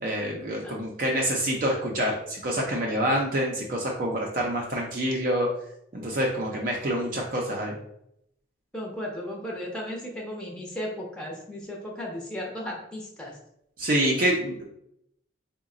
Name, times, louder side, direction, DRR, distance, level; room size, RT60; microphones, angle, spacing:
voice 1, 0.0-5.5 5.9-7.8 13.8-14.7, right 1 dB, 45° right, -1 dB, 0.5 m, -27 dB
voice 2, 8.7-13.4, left 1 dB, 5° left, -2 dB, 0.6 m, -35 dB
3.9 x 2.1 x 3.7 m, 0.76 s
head